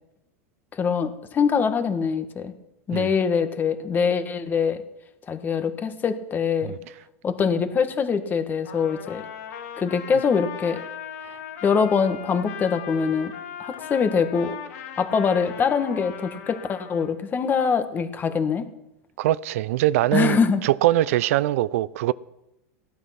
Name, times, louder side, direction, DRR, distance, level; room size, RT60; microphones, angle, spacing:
voice 1, 0.7-2.5 2.9-4.8 5.3-6.7 7.2-9.3 9.8-10.8 11.6-13.3 13.6-14.6 15.0-18.7 20.1-20.6, left 6 dB, 25° left, 1.6 m, -23 dB
Trumpet, 8.6-17.1, left 8 dB, 80° left, 3.3 m, -38 dB
voice 2, 19.2-22.1, right 15 dB, 70° right, 0.5 m, -22 dB
16.5 x 11.5 x 6.0 m
supercardioid pair, 130°, 8 cm